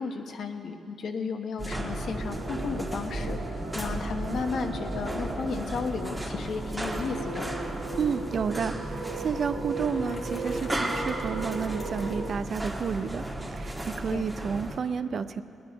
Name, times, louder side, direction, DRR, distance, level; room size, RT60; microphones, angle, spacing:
voice 1, 0.0-7.5 14.1-14.3, left 4 dB, 65° left, 6 dB, 1.0 m, -34 dB
sound 1, 1.6-14.8, right 1 dB, 15° right, 1.5 m, -35 dB
sound 2, 1.6-12.3, right 3 dB, 90° right, 2.1 m, -37 dB
voice 2, 8.0-15.4, right 6 dB, 55° right, 12 dB, 0.5 m, -31 dB
Bicycle, 9.7-12.6, left 3 dB, 35° left, 1.0 m, -47 dB
19.5 x 9.6 x 5.2 m, 2.7 s
cardioid pair, 95°, 0 cm